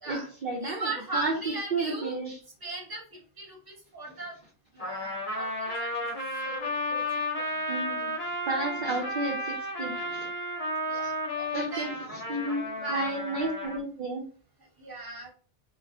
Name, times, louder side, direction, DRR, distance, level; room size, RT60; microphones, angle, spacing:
voice 1, 0.1-1.3 1.7-2.4 7.7-8.1 8.5-10.3 11.5-11.9 12.3-14.2, right 2 dB, 60° right, -1 dB, 0.6 m, -32 dB
voice 2, 0.6-2.2 2.6-4.3 4.7-5.5 5.8-5.9 6.4-7.0 7.3-7.8 9.0-9.1 10.9-11.9 12.7-13.2 14.8-15.3, right 2 dB, 25° right, -2 dB, 0.9 m, -38 dB
Trumpet, 4.8-13.8, left 1 dB, 55° left, 0.8 m, -33 dB
2.3 x 2.0 x 2.6 m, 0.41 s
omnidirectional pair, 1.0 m